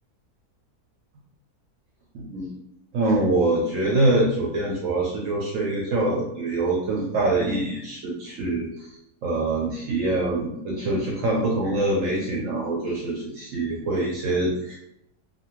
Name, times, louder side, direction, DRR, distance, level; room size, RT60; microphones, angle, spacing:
voice 1, 2.1-2.5 2.9-8.9 9.2-14.7, right 2 dB, 65° right, -4 dB, 0.8 m, -24 dB
2.7 x 2.5 x 2.9 m, 0.80 s
omnidirectional pair, 1.7 m